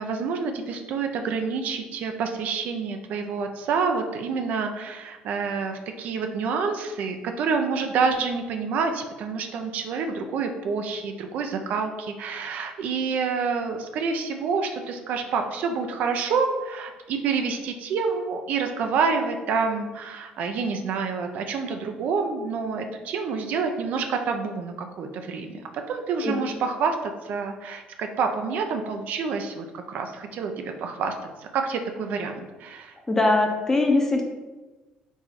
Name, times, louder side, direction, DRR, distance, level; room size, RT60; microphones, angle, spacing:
voice 1, 0.0-33.0, right 5 dB, 65° right, 5 dB, 0.5 m, -28 dB
voice 2, 33.1-34.2, left 2 dB, 15° left, 2 dB, 0.7 m, -21 dB
4.7 x 2.6 x 4.1 m, 1.2 s
cardioid pair, 110°, 3 cm